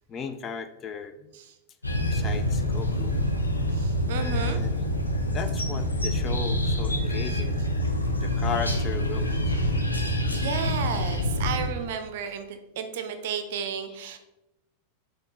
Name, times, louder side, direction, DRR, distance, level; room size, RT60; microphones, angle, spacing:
voice 1, 0.1-1.3 2.1-3.2 4.1-4.8 5.3-7.6 8.2-9.6, left 6 dB, 25° left, 9 dB, 0.3 m, -36 dB
sound 1, 1.8-11.7, left 1 dB, 80° left, 0.5 m, -26 dB
voice 2, 3.7-4.6 10.3-14.2, right 7 dB, 55° right, 8 dB, 0.5 m, -33 dB
4.3 x 2.6 x 4.1 m, 0.92 s
figure-of-eight pair, 90°, 0 cm